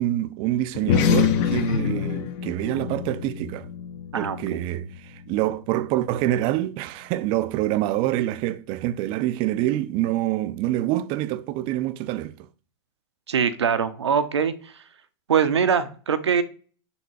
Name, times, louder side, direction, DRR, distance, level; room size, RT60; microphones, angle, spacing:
voice 1, 0.0-3.7 4.2-12.3, right 14 dB, 40° right, 0.5 m, -26 dB
sound 1, 0.7-5.5, left 8 dB, 45° left, 0.9 m, -26 dB
voice 2, 4.1-4.6 13.3-14.7 15.3-16.4, right 7 dB, 90° right, 0.9 m, -23 dB
7.0 x 3.7 x 4.7 m
hypercardioid pair, 125°, 14 cm